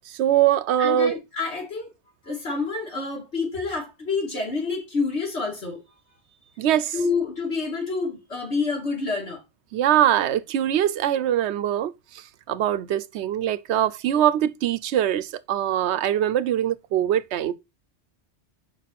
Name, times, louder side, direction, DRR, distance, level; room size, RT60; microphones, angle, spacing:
voice 1, 0.1-1.2 6.6-6.9 9.7-11.9 12.5-17.5, right 11 dB, 75° right, 0.8 m, -22 dB
voice 2, 0.8-1.9 2.2-5.8 6.9-9.4, left 4 dB, 75° left, 3.1 m, -28 dB
5.3 x 4.6 x 5.7 m
omnidirectional pair, 1.2 m